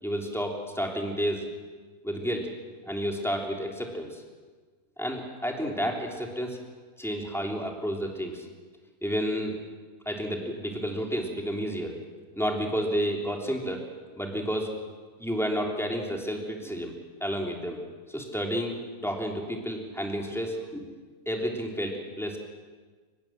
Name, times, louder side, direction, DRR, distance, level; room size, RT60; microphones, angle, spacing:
voice 1, 0.0-1.5 2.0-2.5 2.8-4.2 5.0-6.6 7.0-8.5 9.0-9.6 10.0-12.0 12.4-13.9 14.2-14.7 15.2-16.9 17.2-17.8 18.1-20.8 21.2-22.4, equal, ahead, 1 dB, 3.3 m, -31 dB
24.0 x 20.5 x 7.6 m, 1.4 s
omnidirectional pair, 1.6 m